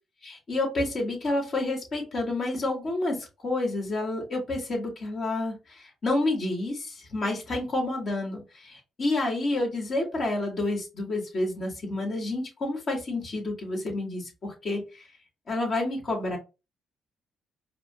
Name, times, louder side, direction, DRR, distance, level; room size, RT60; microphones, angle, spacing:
voice 1, 0.2-15.1 15.5-16.4, left 2 dB, 50° left, -1 dB, 1.9 m, -29 dB
4.8 x 2.1 x 2.4 m, 0.28 s
cardioid pair, 90°, 0 cm